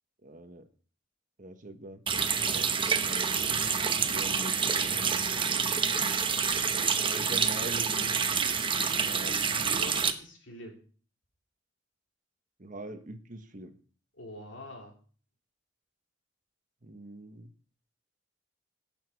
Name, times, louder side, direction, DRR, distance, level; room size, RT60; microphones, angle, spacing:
voice 1, 0.2-0.7 1.4-2.0 2.4-3.5 4.1-5.0 7.0-8.6 9.0-9.4 12.6-13.7 16.8-17.5, right 1 dB, 45° right, 7 dB, 1.3 m, -43 dB
Water tap faucet, 2.1-10.1, right 6 dB, 25° right, 0.9 m, -28 dB
voice 2, 9.6-10.8 14.1-14.9, left 1 dB, 70° left, 1 dB, 3.5 m, -45 dB
18.0 x 7.3 x 4.7 m, 0.43 s
head